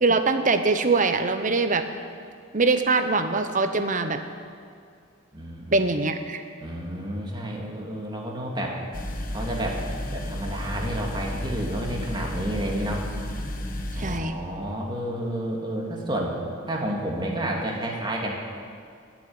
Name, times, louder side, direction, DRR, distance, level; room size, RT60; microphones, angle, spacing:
voice 1, 0.0-1.9 2.5-4.2 5.7-6.4 14.0-14.3, right 3 dB, 40° right, 8 dB, 1.0 m, -23 dB
voice 2, 5.3-5.9 6.6-8.8 9.3-9.8 10.1-13.0 13.9-16.4 16.7-18.3, right 1 dB, 25° right, -1 dB, 2.4 m, -30 dB
sound 1, 8.9-14.2, left 1 dB, 45° left, 1.2 m, -32 dB
19.0 x 7.4 x 9.6 m, 2.2 s
head